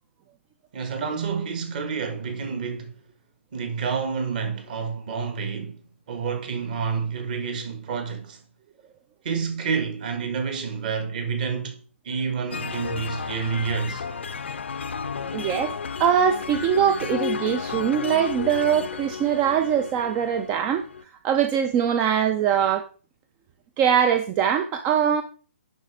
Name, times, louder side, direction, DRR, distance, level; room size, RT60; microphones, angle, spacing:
voice 1, 0.7-2.9 3.5-5.7 6.1-8.4 9.2-14.0, right 5 dB, 40° right, 1.5 m, -29 dB
sound 1, 12.5-21.0, left 6 dB, 60° left, 0.5 m, -33 dB
voice 2, 15.3-15.7 16.0-20.9 21.2-22.9 23.8-25.2, right 8 dB, 20° right, 0.3 m, -22 dB
10.5 x 4.0 x 3.3 m
figure-of-eight pair, 130°, 7 cm